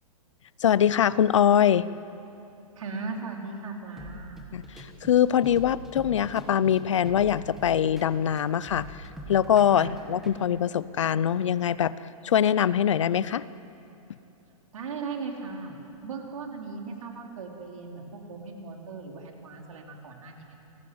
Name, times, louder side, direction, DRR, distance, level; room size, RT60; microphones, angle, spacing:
voice 1, 0.6-1.9 4.5-8.9 9.3-11.9 12.2-13.4, left 9 dB, 55° left, 18 dB, 0.6 m, -23 dB
voice 2, 2.8-4.4 9.7-9.9 14.7-15.7 16.0-20.6, right 4 dB, 65° right, 1 dB, 4.6 m, -38 dB
sound 1, 4.0-10.4, right 1 dB, ahead, 1.3 m, -44 dB
28.5 x 20.5 x 8.0 m, 2.8 s
hypercardioid pair, 175°, 19 cm